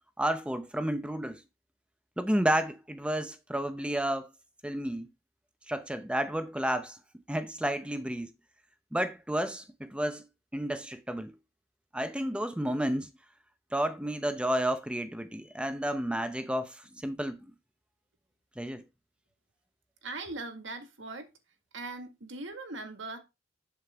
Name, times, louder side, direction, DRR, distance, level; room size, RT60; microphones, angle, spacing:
voice 1, 0.2-1.4 2.2-4.3 4.6-5.1 5.7-7.0 7.3-8.3 8.9-10.2 10.5-11.4 11.9-13.1 13.7-17.4 18.6-18.8, right 1 dB, 5° right, 0.7 m, -31 dB
voice 2, 20.0-21.3 21.7-23.2, right 2 dB, 75° right, 1.8 m, -40 dB
8.0 x 7.5 x 3.5 m
head